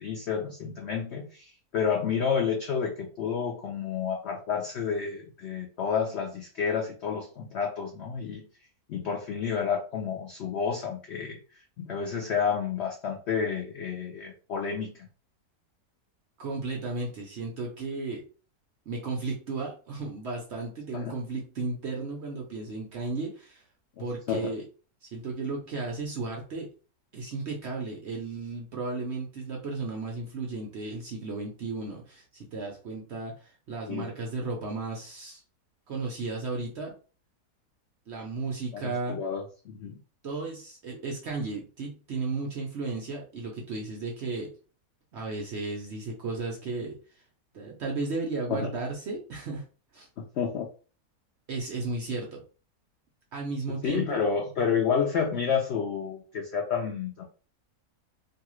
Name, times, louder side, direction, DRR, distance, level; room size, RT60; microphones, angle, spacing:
voice 1, 0.0-8.4 8.9-11.4 11.8-15.1 20.9-21.1 24.0-24.5 33.9-34.1 38.7-40.0 48.6-48.7 50.3-50.7 53.8-57.2, left 6 dB, 80° left, 1 dB, 0.6 m, -30 dB
voice 2, 16.4-18.3 18.9-23.6 24.0-24.6 25.0-26.7 27.1-35.4 35.9-36.9 38.1-39.2 40.2-44.5 45.1-47.2 47.5-49.6 49.9-50.1 51.5-52.4 53.3-54.3, right 3 dB, 60° right, 0 dB, 0.7 m, -34 dB
2.7 x 2.3 x 3.0 m, 0.37 s
omnidirectional pair, 1.7 m